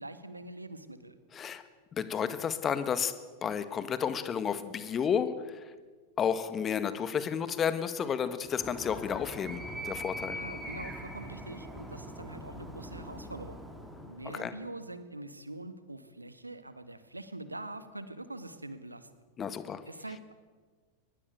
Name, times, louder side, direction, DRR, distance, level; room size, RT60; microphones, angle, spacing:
voice 1, 0.0-1.2 10.3-13.6 14.1-19.1 19.9-20.3, right 2 dB, 85° right, 12 dB, 1.8 m, -44 dB
voice 2, 1.3-1.6 1.9-3.1 3.4-5.7 6.2-10.4 14.3-14.5 19.4-19.8, left 7 dB, 25° left, 12 dB, 1.8 m, -32 dB
Animal, 8.4-14.3, equal, 5° right, 4.4 m, -42 dB
23.5 x 20.5 x 8.3 m, 1.4 s
figure-of-eight pair, 90°, 0 cm